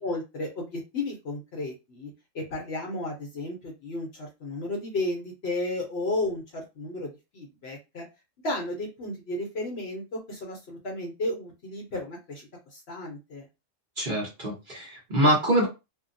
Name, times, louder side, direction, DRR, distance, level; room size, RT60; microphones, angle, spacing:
voice 1, 0.0-8.0 8.4-13.4, left 2 dB, 55° left, 1 dB, 0.9 m, -33 dB
voice 2, 14.0-15.6, right 1 dB, 40° right, -3 dB, 1.1 m, -24 dB
2.7 x 2.2 x 2.6 m, 0.26 s
omnidirectional pair, 1.4 m